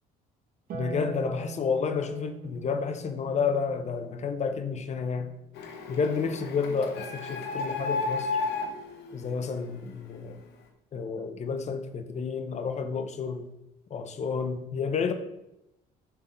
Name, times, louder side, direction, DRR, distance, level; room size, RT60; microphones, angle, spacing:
voice 1, 0.7-5.3 5.9-8.3 9.1-10.4 10.9-13.5 13.9-15.1, left 5 dB, 40° left, 0.8 m, -30 dB
Harp, 0.7-7.2 8.8-9.8, right 4 dB, 60° right, 1.5 m, -44 dB
Printer, 5.5-10.1, left 3 dB, 80° left, 1.3 m, -33 dB
6.9 x 4.8 x 5.2 m
cardioid pair, 110°, 17 cm